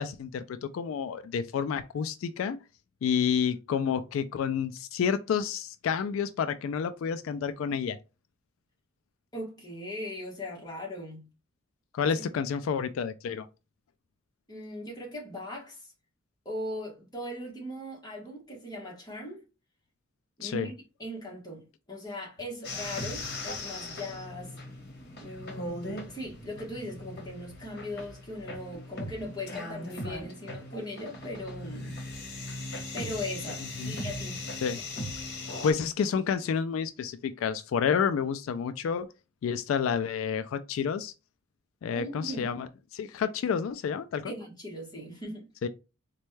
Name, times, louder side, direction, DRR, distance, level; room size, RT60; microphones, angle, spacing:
voice 1, 0.0-2.6 3.0-8.0 11.9-13.5 20.4-20.7 33.8-34.0 34.6-34.8 35.6-39.1 39.4-41.1 41.8-44.3 45.6-45.7, left 7 dB, 80° left, 0.3 m, -29 dB
voice 2, 9.3-11.3 12.0-12.3 14.5-15.8 16.4-19.4 20.4-20.7 21.0-24.6 25.2-32.0 32.7-34.4 41.9-42.6 44.2-45.5, left 1 dB, 20° left, 1.2 m, -39 dB
sound 1, 22.6-35.7, left 2 dB, 50° left, 1.1 m, -39 dB
4.2 x 2.2 x 3.1 m
head